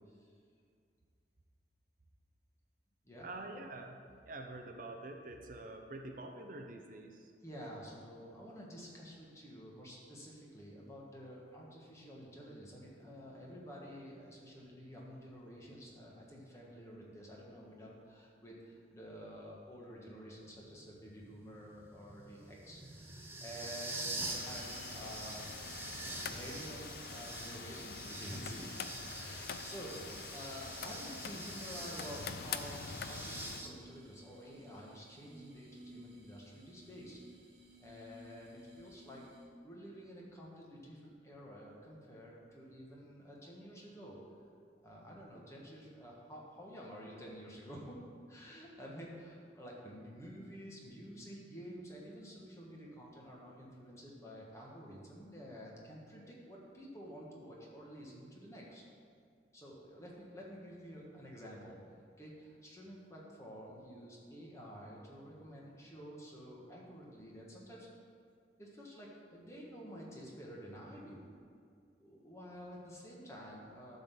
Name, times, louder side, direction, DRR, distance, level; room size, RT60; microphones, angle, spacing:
voice 1, 3.2-4.0 4.3-7.3, right 2 dB, 50° right, 3 dB, 0.7 m, -46 dB
voice 2, 7.4-25.5 26.3-28.7 29.2-37.2 37.8-44.2 44.5-48.0 48.3-58.8 59.5-61.8 62.2-67.9 68.6-71.2 72.0-74.0, equal, 15° left, -4 dB, 1.4 m, -50 dB
sound 1, 20.5-33.7, right 2 dB, 15° right, 0.8 m, -46 dB
sound 2, 24.2-33.6, left 6 dB, 60° left, 0.4 m, -45 dB
sound 3, 33.1-39.6, equal, 80° right, 1.8 m, -58 dB
11.5 x 4.0 x 6.9 m, 2.2 s
head